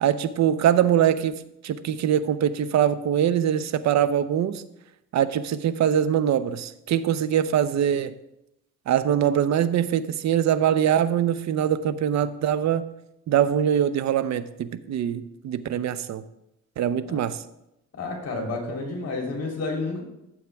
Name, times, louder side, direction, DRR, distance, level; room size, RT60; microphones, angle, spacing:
voice 1, 0.0-4.6 5.1-8.1 8.9-12.8 13.3-16.2 16.8-17.4, right 9 dB, 65° right, 14 dB, 0.7 m, -23 dB
voice 2, 17.9-20.0, left 3 dB, 55° left, 1 dB, 3.2 m, -30 dB
14.5 x 7.3 x 3.5 m, 0.86 s
cardioid pair, 90°, 30 cm